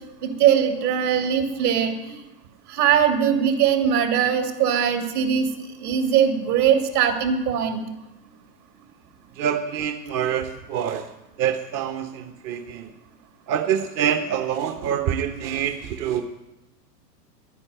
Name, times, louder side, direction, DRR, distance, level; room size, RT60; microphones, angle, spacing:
voice 1, 0.2-2.2 2.7-5.5 5.8-7.8, right 8 dB, 65° right, 5 dB, 2.9 m, -21 dB
voice 2, 9.4-11.1 11.4-12.9 13.5-16.2, right 9 dB, 35° right, 8 dB, 0.9 m, -26 dB
11.0 x 9.8 x 9.0 m, 0.98 s
hypercardioid pair, 105°, 50 cm